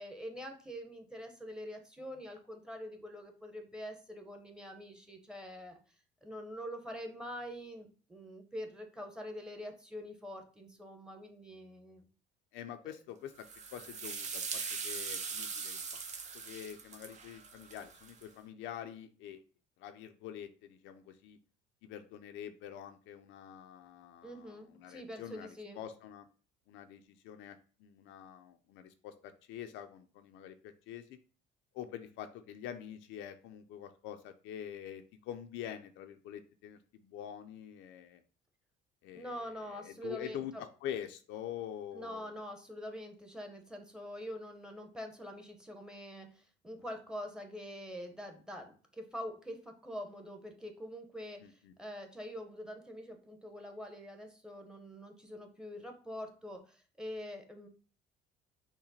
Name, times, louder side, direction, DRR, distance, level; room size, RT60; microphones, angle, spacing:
voice 1, 0.0-5.8 6.2-12.1 12.8-12.9 24.2-25.8 39.1-40.6 41.9-57.7, equal, 5° right, 5 dB, 1.0 m, -45 dB
voice 2, 12.5-16.0 16.3-19.4 19.8-21.4 21.8-25.5 25.8-26.3 26.7-31.2 31.7-38.2 39.0-42.4 51.4-51.7, left 10 dB, 75° left, 7 dB, 0.6 m, -46 dB
sound 1, 13.4-18.2, right 5 dB, 35° right, 0.7 m, -41 dB
5.8 x 2.2 x 4.1 m, 0.38 s
cardioid pair, 100°, 20 cm